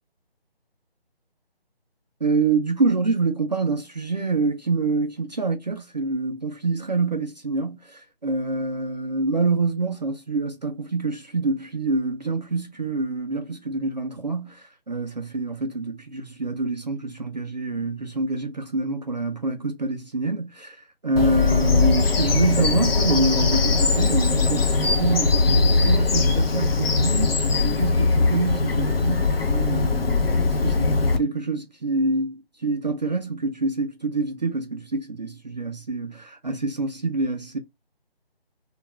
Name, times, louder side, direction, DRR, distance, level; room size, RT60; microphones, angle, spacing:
voice 1, 2.2-25.5 25.8-27.4 27.6-37.6, right 3 dB, 45° right, 0.4 m, -26 dB
Bird vocalization bird call bird song, 21.2-31.2, left 3 dB, 65° left, 0.7 m, -20 dB
2.3 x 2.3 x 3.0 m
figure-of-eight pair, 165°, 31 cm